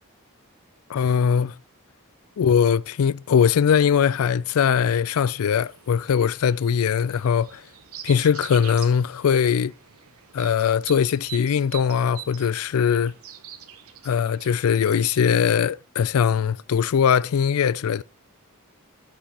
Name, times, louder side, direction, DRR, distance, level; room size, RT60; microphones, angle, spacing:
voice 1, 0.9-1.5 2.4-7.6 8.0-9.7 10.3-13.1 14.0-18.0, left 7 dB, 70° left, 0.4 m, -21 dB
sound 1, 5.3-15.6, right 10 dB, 70° right, 0.9 m, -44 dB
15.5 x 7.2 x 2.9 m
head